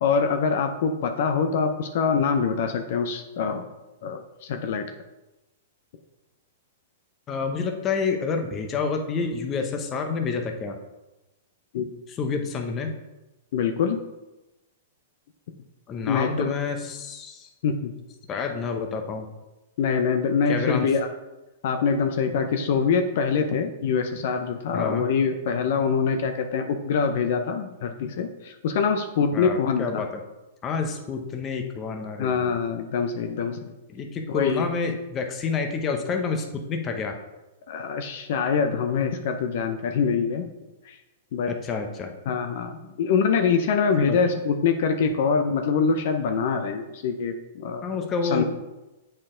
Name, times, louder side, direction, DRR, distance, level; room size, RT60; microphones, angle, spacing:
voice 1, 0.0-3.6 4.0-4.9 11.7-11.9 13.5-14.0 16.1-16.5 17.6-17.9 18.3-18.4 19.8-21.1 21.6-30.0 32.2-33.7 34.3-34.7 37.7-40.5 40.9-41.0 41.3-41.5 42.3-47.8 48.3-48.4, left 5 dB, 60° left, 6 dB, 0.6 m, -24 dB
voice 2, 7.3-10.8 12.1-12.9 15.9-17.5 18.3-19.3 20.5-20.9 24.7-25.1 29.3-30.1 30.6-32.5 33.9-37.2 41.4-42.1 44.1-44.2 47.8-48.4, left 5 dB, 25° left, 4 dB, 0.8 m, -28 dB
7.9 x 4.4 x 3.8 m, 1.0 s
hypercardioid pair, 150°, 0 cm